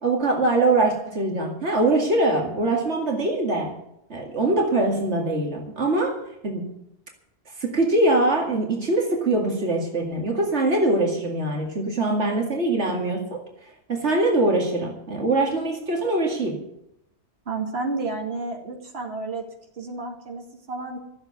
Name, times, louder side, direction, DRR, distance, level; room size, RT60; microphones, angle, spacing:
voice 1, 0.0-3.7 4.1-6.7 7.6-13.4 13.9-16.6, right 2 dB, 80° right, 1 dB, 2.5 m, -23 dB
voice 2, 17.5-19.4 19.7-21.0, right 3 dB, 65° right, 0 dB, 2.6 m, -31 dB
13.5 x 8.0 x 9.3 m, 0.79 s
omnidirectional pair, 1.2 m